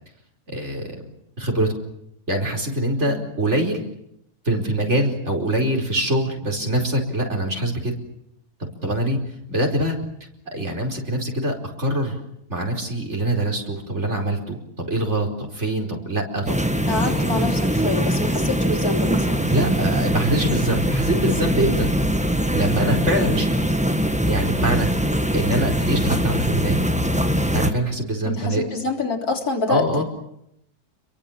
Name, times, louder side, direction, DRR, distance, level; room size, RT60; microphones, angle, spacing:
voice 1, 0.5-0.9 1.4-1.7 2.3-3.8 4.4-7.9 8.8-9.2 9.5-10.0 10.5-12.1 12.5-16.6 17.0-17.2 19.4-21.9 22.5-23.5 24.3-24.9 25.3-26.8 27.5-28.7 29.7-30.0, right 1 dB, 45° right, 2 dB, 5.0 m, -24 dB
sound 1, 16.5-27.7, equal, 5° right, 1.4 m, -22 dB
voice 2, 16.9-19.5 23.2-23.4 28.2-30.0, left 3 dB, 65° left, 4 dB, 3.9 m, -26 dB
29.5 x 23.0 x 7.3 m, 0.78 s
omnidirectional pair, 1.7 m